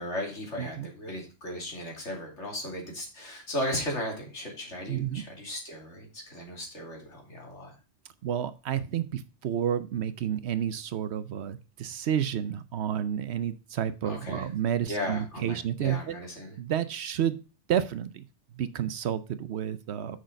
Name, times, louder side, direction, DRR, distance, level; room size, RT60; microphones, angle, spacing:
voice 1, 0.0-7.7 14.0-14.5 14.9-16.6, left 1 dB, 70° left, 0 dB, 3.0 m, -36 dB
voice 2, 4.9-5.3 8.2-16.2 16.6-17.4 17.7-18.2 18.5-20.2, right 9 dB, 65° right, 13 dB, 0.9 m, -30 dB
6.4 x 6.3 x 5.1 m, 0.32 s
omnidirectional pair, 1.2 m